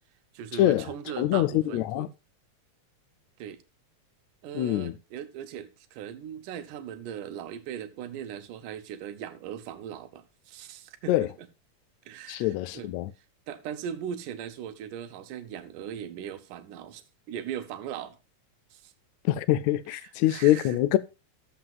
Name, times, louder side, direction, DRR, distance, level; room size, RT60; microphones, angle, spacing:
voice 1, 0.3-2.1 3.4-3.6 4.4-11.5 12.1-12.9 13.5-18.2 18.7-18.9 19.9-20.8, right 9 dB, 80° right, 2.5 m, -39 dB
voice 2, 1.2-2.1 4.6-4.9 11.1-11.3 12.3-13.1 19.2-21.0, left 14 dB, 85° left, 1.6 m, -24 dB
12.5 x 7.7 x 2.4 m
omnidirectional pair, 3.7 m